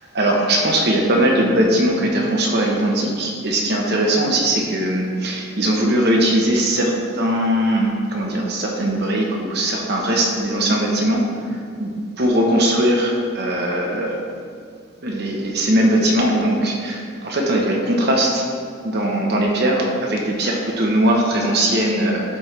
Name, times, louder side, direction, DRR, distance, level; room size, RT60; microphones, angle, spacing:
voice 1, 0.1-11.2 11.8-14.1 15.0-18.4 18.8-22.4, right 1 dB, 55° right, -1 dB, 1.1 m, -20 dB
12.5 x 4.4 x 3.4 m, 2.2 s
head